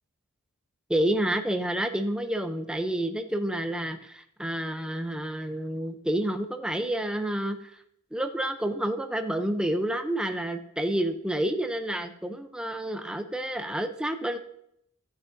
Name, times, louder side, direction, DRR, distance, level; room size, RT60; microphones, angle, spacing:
voice 1, 0.9-7.6 8.1-14.4, right 1 dB, 5° right, 6 dB, 0.7 m, -29 dB
16.0 x 9.3 x 2.7 m, 0.74 s
head